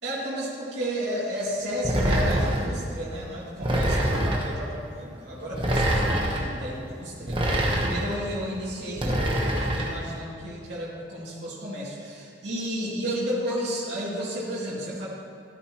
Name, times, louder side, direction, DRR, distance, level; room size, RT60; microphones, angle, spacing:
voice 1, 0.0-15.1, equal, 85° right, -9 dB, 2.8 m, -32 dB
sound 1, 1.8-2.7 3.6-4.5 5.5-6.4 7.3-8.2 9.0-9.9, right 1 dB, 30° right, 1.2 m, -24 dB
13.5 x 13.0 x 3.1 m, 2.3 s
head